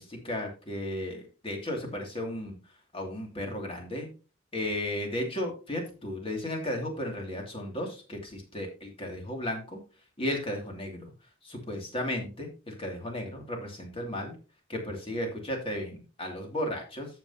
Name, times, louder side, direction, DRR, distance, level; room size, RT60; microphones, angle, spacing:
voice 1, 0.0-2.5 2.9-4.1 4.5-9.8 10.2-11.1 11.4-14.4 14.7-17.1, left 1 dB, 30° left, 2 dB, 2.7 m, -34 dB
14.0 x 6.0 x 2.9 m, 0.34 s
head